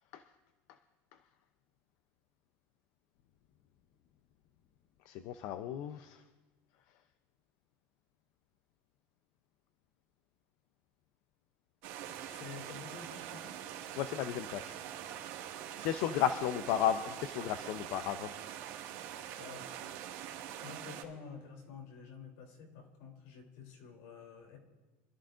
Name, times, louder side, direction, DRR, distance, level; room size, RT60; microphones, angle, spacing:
voice 1, 5.1-6.2 12.0-12.1 14.0-14.7 15.8-18.3, left 10 dB, 55° left, 10 dB, 0.6 m, -34 dB
sound 1, 11.8-21.0, right 10 dB, 70° right, 2.0 m, -44 dB
voice 2, 12.3-13.6 19.4-19.7 20.6-24.6, left 5 dB, 75° left, 1 dB, 3.3 m, -49 dB
25.5 x 13.5 x 2.6 m, 1.2 s
cardioid pair, 155°, 7 cm